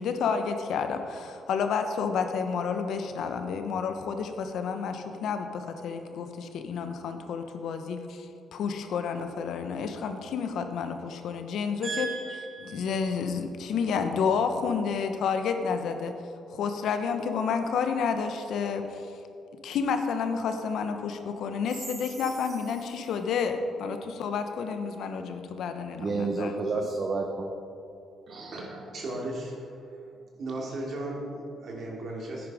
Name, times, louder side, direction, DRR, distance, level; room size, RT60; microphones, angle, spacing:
voice 1, 0.0-12.1 12.6-16.1 16.5-19.0 19.6-26.9, left 6 dB, 75° left, 7 dB, 0.9 m, -30 dB
voice 2, 11.8-13.0 22.2-22.3 26.0-27.5, right 4 dB, 40° right, 3 dB, 0.9 m, -31 dB
voice 3, 28.3-29.8 30.1-32.5, right 1 dB, 55° right, -2 dB, 2.9 m, -36 dB
10.5 x 9.5 x 4.9 m, 2.5 s
cardioid pair, 90°, 0 cm